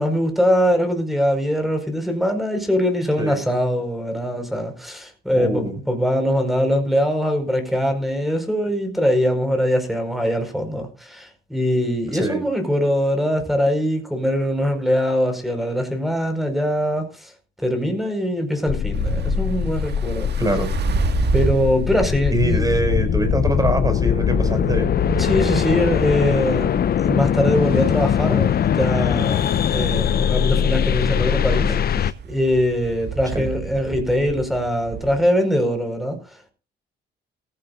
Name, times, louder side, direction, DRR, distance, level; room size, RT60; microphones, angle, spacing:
voice 1, 0.0-17.3 17.6-20.3 21.3-22.7 25.2-31.7 32.3-36.5, equal, ahead, 4.9 m, -22 dB
voice 2, 5.3-5.7 12.1-12.4 20.4-20.7 22.3-24.9 31.7-32.1 33.3-33.5, right 1 dB, 20° right, 5.5 m, -23 dB
sound 1, 18.7-32.1, left 9 dB, 50° left, 0.7 m, -21 dB
sound 2, 18.9-35.2, right 6 dB, 55° right, 1.9 m, -31 dB
18.0 x 15.5 x 2.5 m
cardioid pair, 90°, 20 cm